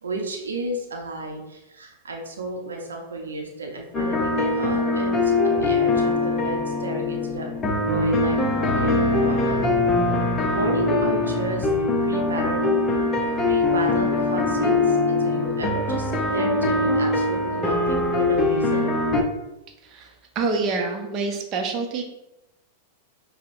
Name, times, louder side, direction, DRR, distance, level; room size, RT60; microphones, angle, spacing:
voice 1, 0.0-9.6 10.5-11.7 12.0-12.8 13.4-18.9, right 2 dB, 90° right, 1 dB, 0.7 m, -32 dB
sound 1, 3.9-19.2, left 2 dB, 20° left, 0.7 m, -22 dB
sound 2, 8.7-14.3, left 2 dB, 60° left, 0.5 m, -33 dB
voice 2, 19.8-22.0, right 4 dB, 40° right, 3 dB, 0.7 m, -27 dB
5.3 x 2.1 x 2.6 m, 0.92 s
hypercardioid pair, 105°, 0 cm